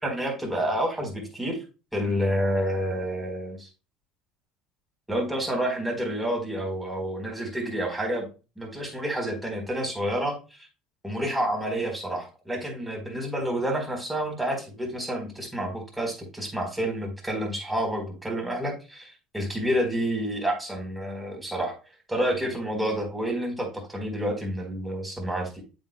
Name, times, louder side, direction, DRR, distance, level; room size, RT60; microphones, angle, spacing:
voice 1, 0.0-1.6 1.9-3.7 5.1-8.3 8.6-10.7 11.0-21.8 22.1-25.6, equal, 5° right, 1 dB, 4.1 m, -29 dB
8.1 x 8.0 x 2.3 m, 0.31 s
hypercardioid pair, 80°, 0 cm